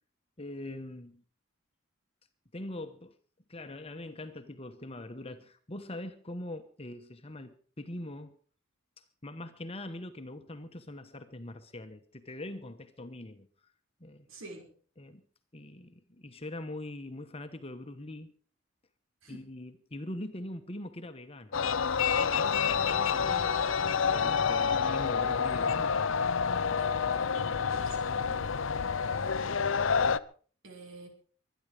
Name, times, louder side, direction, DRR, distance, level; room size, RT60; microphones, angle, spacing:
voice 1, 0.4-1.2 2.5-3.1 3.5-8.4 9.2-13.5 14.0-14.3 15.0-15.2 15.5-18.3 19.3-21.6 22.2-23.6 24.1-26.0, left 1 dB, 30° left, 1.1 m, -42 dB
voice 2, 14.3-14.7 19.2-19.5 26.7-28.5 29.0-29.8 30.6-31.1, right 2 dB, 85° right, 5.6 m, -50 dB
sound 1, 21.5-30.2, left 6 dB, 75° left, 0.7 m, -28 dB
23.5 x 10.5 x 5.0 m
head